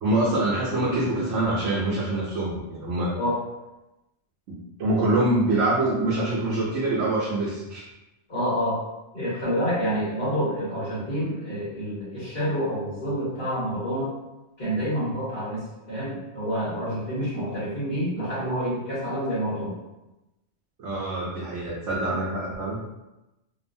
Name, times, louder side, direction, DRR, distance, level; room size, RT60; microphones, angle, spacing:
voice 1, 0.0-3.1 4.5-7.8 20.8-22.9, right 2 dB, 80° right, -7 dB, 1.0 m, -25 dB
voice 2, 8.3-8.8 9.1-14.1 14.6-19.7 22.1-22.2, equal, 50° left, -11 dB, 1.2 m, -28 dB
2.7 x 2.3 x 2.6 m, 0.98 s
omnidirectional pair, 1.2 m